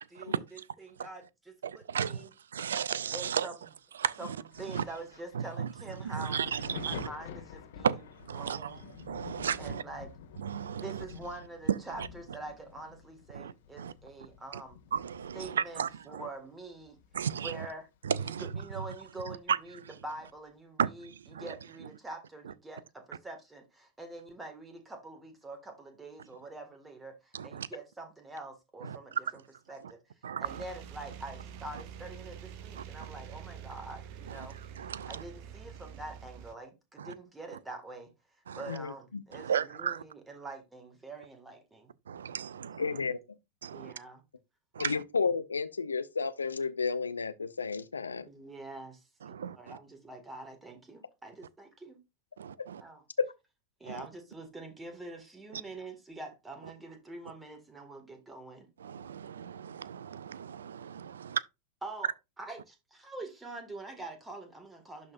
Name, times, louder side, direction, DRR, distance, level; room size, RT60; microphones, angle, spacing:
voice 1, 0.1-2.3 3.1-3.5 4.2-6.4 6.8-7.9 8.3-8.8 9.6-10.1 10.8-14.8 15.3-17.0 17.4-17.9 18.2-29.4 29.7-30.0 30.4-34.6 35.0-38.1 38.5-41.9 43.7-44.2 48.3-52.0 52.8-53.0 53.8-58.7 61.8-62.1 62.4-65.1, right 2 dB, 10° right, 1.9 m, -45 dB
voice 2, 1.6-3.5 4.0-4.4 4.7-4.8 5.3-5.7 6.0-7.1 7.8-8.8 9.0-9.8 10.4-11.0 11.7-12.1 13.3-13.9 14.5-14.6 14.9-16.3 17.1-17.7 18.0-18.5 19.3-19.6 20.8-21.5 27.3-27.7 28.8-29.0 30.2-30.6 32.8-32.9 34.3-34.5 34.8-35.2 37.0-37.1 38.5-38.7 39.3-40.0 42.1-43.0 43.6-43.9 44.7-45.0 49.2-49.8 52.4-52.8 53.9-54.1 55.5-55.6 58.8-61.4, right 8 dB, 65° right, 0.4 m, -34 dB
Thunder, 4.5-17.9 18.1-19.5 20.3-20.5, left 8 dB, 55° left, 1.6 m, -49 dB
sound 1, 30.4-36.5, right 8 dB, 45° right, 0.8 m, -46 dB
voice 3, 38.7-39.2 42.8-43.2 44.8-48.3, left 5 dB, 75° left, 0.6 m, -32 dB
11.5 x 4.1 x 2.5 m
figure-of-eight pair, 90°, 0 cm